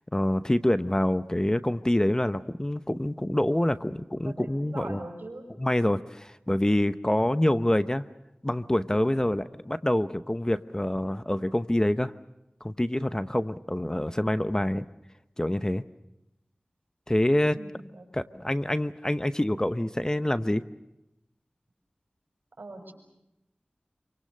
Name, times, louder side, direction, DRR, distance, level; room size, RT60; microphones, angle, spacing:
voice 1, 0.1-5.0 5.6-8.0 8.4-12.1 12.6-14.9 15.4-15.8 17.1-17.6 18.1-20.6, left 1 dB, 20° left, 12 dB, 0.8 m, -26 dB
voice 2, 4.2-5.5 17.5-18.1 22.6-22.9, right 2 dB, 75° right, 4 dB, 6.3 m, -41 dB
28.0 x 25.0 x 6.6 m, 0.89 s
wide cardioid pair, 50°, 3 cm